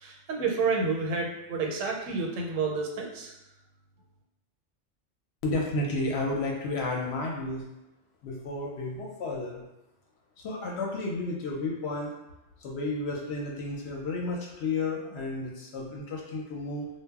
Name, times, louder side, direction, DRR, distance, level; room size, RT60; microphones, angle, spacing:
voice 1, 0.0-3.3, right 4 dB, 85° right, 1 dB, 0.9 m, -29 dB
voice 2, 5.4-7.6 8.2-9.7 10.4-12.1 12.6-16.9, left 2 dB, 65° left, -1 dB, 0.7 m, -32 dB
2.1 x 2.0 x 3.4 m, 0.92 s
omnidirectional pair, 1.3 m